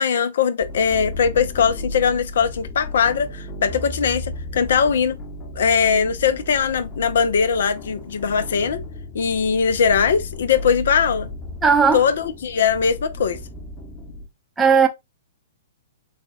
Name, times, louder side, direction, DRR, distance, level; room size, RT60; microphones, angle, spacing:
voice 1, 0.0-5.2 5.6-8.8 9.1-11.3 11.9-13.4, left 6 dB, 60° left, 0.5 m, -20 dB
sound 1, 0.6-14.3, left 2 dB, 25° left, 0.9 m, -34 dB
voice 2, 11.6-12.0 14.6-14.9, right 6 dB, 10° right, 0.6 m, -15 dB
4.1 x 2.2 x 3.7 m
figure-of-eight pair, 115°, 0 cm